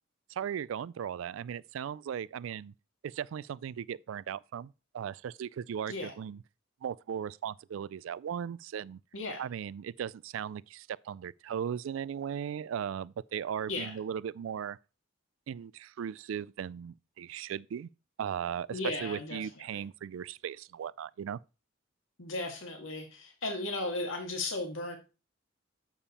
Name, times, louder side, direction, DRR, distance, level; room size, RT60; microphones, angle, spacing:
voice 1, 0.3-2.7 3.0-6.4 6.8-9.0 9.4-14.8 15.5-17.9 18.2-21.4, right 8 dB, 80° right, 0.3 m, -37 dB
voice 2, 9.1-9.4 13.7-13.9 18.7-19.4 19.7-19.8 22.2-25.0, left 2 dB, 80° left, 1.8 m, -35 dB
7.2 x 7.0 x 4.2 m
head